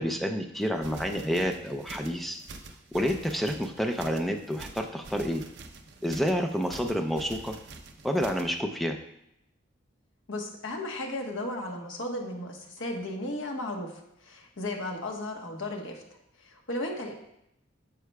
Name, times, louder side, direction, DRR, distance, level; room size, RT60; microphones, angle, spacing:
voice 1, 0.0-2.4 2.9-5.4 6.0-7.5 8.0-9.0, equal, ahead, 4 dB, 0.4 m, -29 dB
sound 1, 0.6-8.6, right 3 dB, 55° right, 0.6 m, -46 dB
voice 2, 10.3-13.9 14.2-16.0 16.4-17.1, left 1 dB, 70° left, 1 dB, 1.2 m, -35 dB
9.5 x 6.7 x 2.3 m, 0.80 s
head